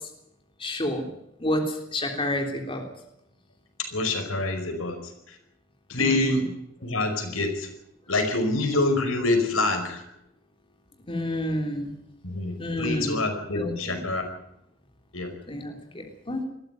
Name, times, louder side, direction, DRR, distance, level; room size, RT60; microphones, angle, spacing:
voice 1, 0.6-1.0 1.4-2.8 6.0-6.4 11.1-11.9 12.6-13.1 13.5-14.0 15.5-16.4, left 1 dB, 25° left, 3 dB, 3.5 m, -29 dB
voice 2, 3.8-5.0 5.3-5.4 5.9-6.4 6.8-7.7 8.1-10.0 12.2-14.3 15.1-15.3, left 2 dB, 90° left, 6 dB, 5.1 m, -26 dB
21.0 x 14.5 x 9.3 m, 0.79 s
head